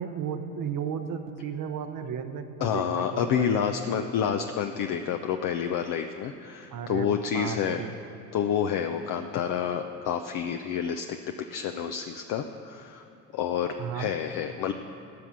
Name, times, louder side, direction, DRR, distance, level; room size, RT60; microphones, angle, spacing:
voice 1, 0.0-3.5 3.9-4.1 4.4-4.6 6.7-7.1 7.3-7.9 13.8-14.1, right 8 dB, 45° right, 6 dB, 0.9 m, -34 dB
voice 2, 2.6-7.8 8.3-11.2 11.5-13.0 13.3-14.7, left 8 dB, 45° left, 6 dB, 0.7 m, -29 dB
15.0 x 6.0 x 7.1 m, 2.8 s
hypercardioid pair, 70°, 44 cm